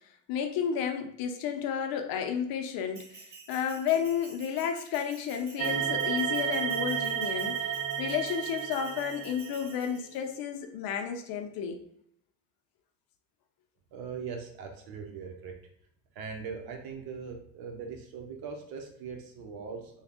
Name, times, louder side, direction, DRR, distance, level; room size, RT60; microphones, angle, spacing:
voice 1, 0.3-3.2 3.5-7.7 8.0-11.8, left 8 dB, 60° left, 5 dB, 0.7 m, -32 dB
Bell, 2.9-10.4, right 3 dB, 25° right, 0.7 m, -51 dB
sound 1, 5.6-9.9, right 9 dB, 85° right, 0.5 m, -32 dB
voice 2, 13.9-15.5 16.1-20.0, right 5 dB, 65° right, 2 dB, 0.9 m, -40 dB
3.5 x 2.3 x 3.6 m, 0.70 s
supercardioid pair, 105°, 40 cm